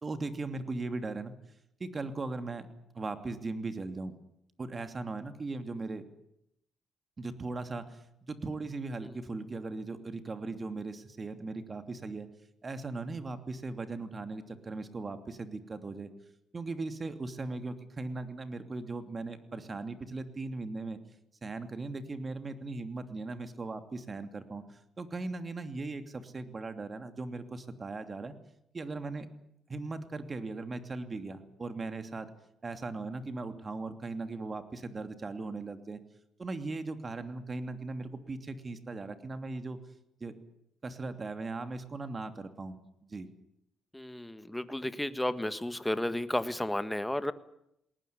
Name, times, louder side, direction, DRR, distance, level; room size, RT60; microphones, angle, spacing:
voice 1, 0.0-1.4 1.8-2.7 2.9-4.1 4.6-6.0 7.2-12.3 12.6-16.1 16.5-21.0 21.4-28.3 28.7-29.3 29.7-32.3 32.6-36.0 36.4-39.8 40.2-40.3 40.8-43.3, right 3 dB, 30° right, 9 dB, 2.8 m, -38 dB
voice 2, 43.9-47.3, left 1 dB, 5° left, 12 dB, 1.6 m, -33 dB
20.5 x 19.0 x 9.7 m, 0.76 s
cardioid pair, 90°, 0 cm